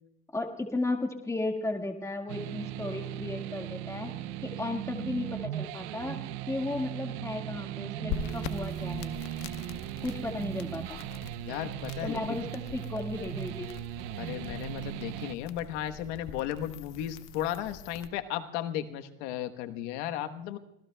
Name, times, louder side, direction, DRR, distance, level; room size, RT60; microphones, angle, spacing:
voice 1, 0.3-4.1 4.4-6.2 6.5-9.1 10.0-11.0 12.0-13.7, left 2 dB, 10° left, 3 dB, 1.7 m, -34 dB
sound 1, 2.3-15.3, right 13 dB, 75° right, 0.7 m, -38 dB
sound 2, 8.1-18.1, left 8 dB, 55° left, 1.0 m, -43 dB
voice 2, 11.4-12.4 14.2-20.6, left 11 dB, 90° left, 8 dB, 1.2 m, -35 dB
25.5 x 18.0 x 2.2 m, 0.87 s
cardioid pair, 145°, 34 cm